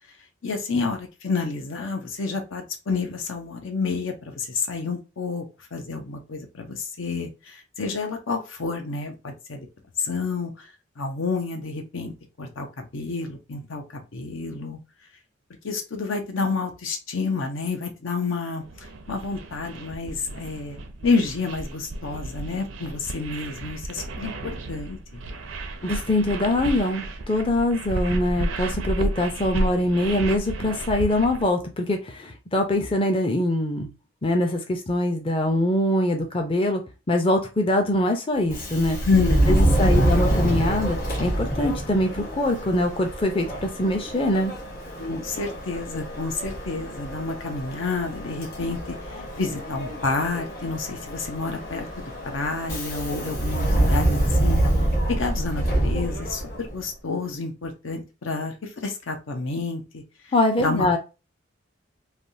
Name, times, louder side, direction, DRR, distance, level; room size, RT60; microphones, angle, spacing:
voice 1, 0.4-5.5 5.7-9.7 10.0-10.7 11.0-14.8 15.6-25.2 39.0-40.1 45.0-51.9 52.2-54.6 55.1-60.0 60.6-61.0, left 4 dB, 80° left, 4 dB, 0.7 m, -29 dB
sound 1, 18.6-31.5, right 2 dB, 80° right, 0.5 m, -33 dB
voice 2, 25.8-33.9 34.2-36.8 37.1-39.0 39.5-44.5 60.3-61.0, left 1 dB, 25° left, 4 dB, 0.5 m, -23 dB
Subway metro underground, 38.4-56.8, right 1 dB, 45° left, 1.3 m, -26 dB
3.3 x 2.3 x 2.6 m, 0.29 s
head